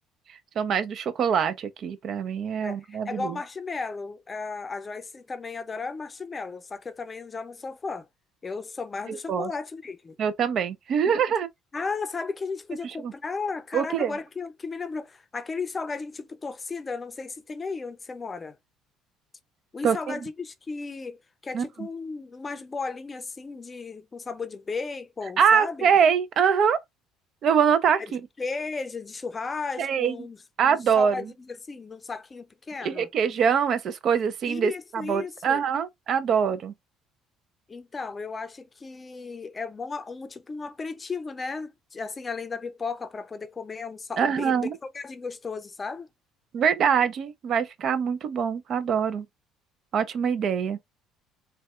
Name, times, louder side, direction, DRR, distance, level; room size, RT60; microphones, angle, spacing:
voice 1, 0.6-3.4 9.1-9.5 10.2-11.5 13.0-13.1 13.7-14.1 19.8-20.1 21.5-21.7 25.4-26.8 27.4-28.2 29.8-30.1 30.6-31.2 32.8-36.7 44.2-44.8 46.5-49.3 49.9-50.8, right 7 dB, 55° right, 0.5 m, -24 dB
voice 2, 2.6-8.1 8.4-10.2 11.7-18.6 19.7-25.9 28.4-33.1 34.4-35.6 37.7-46.1, left 4 dB, 30° left, 0.5 m, -35 dB
4.0 x 2.3 x 2.3 m
supercardioid pair, 75°, 0 cm